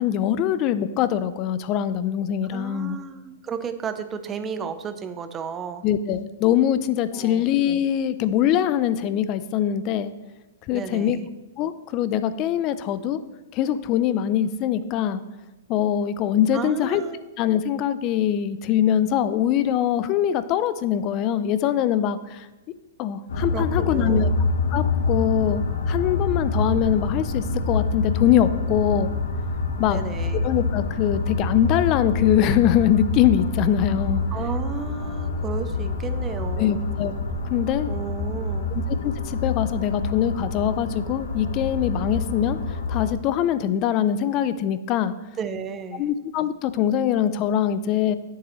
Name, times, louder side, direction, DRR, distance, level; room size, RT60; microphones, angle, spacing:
voice 1, 0.0-3.0 5.8-10.1 10.7-11.2 11.6-13.2 13.5-15.2 15.7-17.0 17.4-22.5 23.0-24.3 24.7-29.1 29.8-30.0 30.4-34.2 36.6-37.1 37.5-37.9 38.7-42.6 42.9-45.1 46.0-48.2, left 10 dB, 35° left, 13 dB, 0.5 m, -23 dB
voice 2, 2.5-5.8 7.1-7.4 10.7-11.3 16.5-17.2 23.5-24.4 29.8-30.5 34.3-36.8 37.9-38.7 45.4-46.1, right 6 dB, 20° right, 10 dB, 0.6 m, -33 dB
sound 1, 23.3-43.1, left 3 dB, 85° left, 1.2 m, -26 dB
10.0 x 7.4 x 3.1 m, 1.0 s
hypercardioid pair, 140°, 0 cm